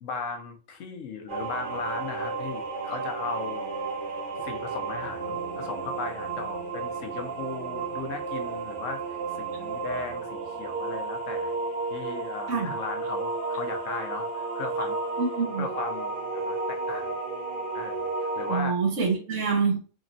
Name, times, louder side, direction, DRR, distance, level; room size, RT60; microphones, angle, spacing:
voice 1, 0.0-3.7 4.4-11.6 11.9-15.0 15.6-17.1 17.7-18.8, left 4 dB, 75° left, 5 dB, 1.1 m, -37 dB
sound 1, 1.3-18.6, right 3 dB, 50° right, 0.7 m, -32 dB
voice 2, 15.2-15.6 18.5-19.8, right 5 dB, 70° right, 1 dB, 1.4 m, -26 dB
4.1 x 3.1 x 2.6 m, 0.37 s
omnidirectional pair, 1.4 m